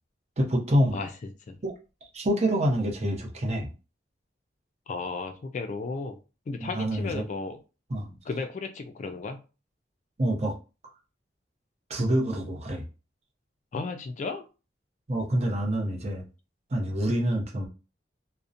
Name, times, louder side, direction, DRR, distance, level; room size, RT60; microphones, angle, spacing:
voice 1, 0.4-1.0 1.6-1.7 2.1-3.7 6.6-7.2 7.9-8.2 10.2-10.6 11.9-12.9 15.1-16.3 16.7-17.7, equal, 35° right, 0 dB, 0.7 m, -26 dB
voice 2, 4.9-6.2 6.5-7.6 8.3-9.4 13.7-14.4, left 4 dB, 45° left, 7 dB, 0.3 m, -34 dB
2.7 x 2.0 x 2.4 m, 0.32 s
head